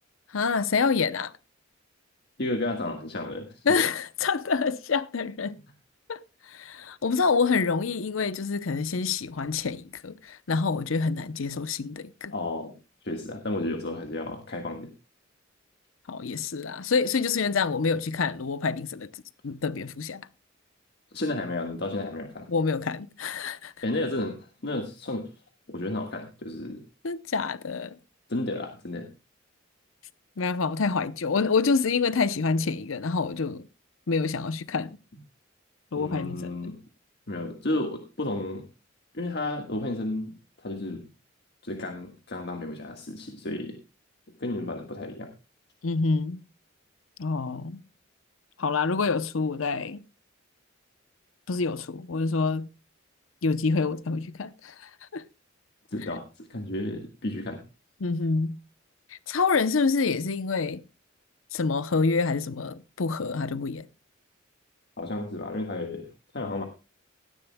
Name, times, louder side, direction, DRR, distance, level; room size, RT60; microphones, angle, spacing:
voice 1, 0.3-1.3 3.7-5.6 6.1-12.3 16.1-19.1 19.4-20.3 22.5-23.7 27.0-27.9 30.4-33.7 34.1-35.0 35.9-36.6 45.8-46.4 47.2-47.8 48.6-50.0 51.5-52.7 53.4-55.2 58.0-58.6 59.3-60.8 61.5-63.9, left 4 dB, 90° left, 0.7 m, -27 dB
voice 2, 2.4-3.6 12.3-12.7 13.0-14.9 21.1-22.5 23.8-25.3 25.7-26.8 28.3-29.1 35.9-36.8 37.3-38.7 39.1-41.1 41.6-43.8 44.4-45.3 55.9-57.6 65.0-66.1 66.3-66.6, left 2 dB, 55° left, 1.6 m, -32 dB
17.5 x 13.5 x 2.2 m
head